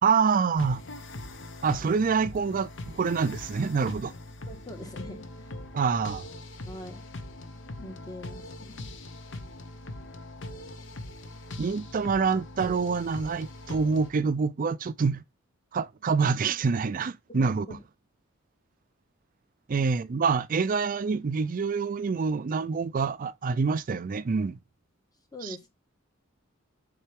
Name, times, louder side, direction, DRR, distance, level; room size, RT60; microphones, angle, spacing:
voice 1, 0.0-0.8 1.6-4.1 5.7-6.3 11.6-15.2 15.7-17.7 19.7-24.6 25.4-25.6, right 5 dB, 40° right, 0.4 m, -26 dB
sound 1, 0.5-14.1, left 1 dB, 65° left, 0.9 m, -41 dB
voice 2, 4.5-5.5 6.7-7.0 7.8-9.0 17.3-17.8 19.7-19.8 25.3-25.7, left 1 dB, 20° left, 1.4 m, -43 dB
7.4 x 4.0 x 3.5 m
head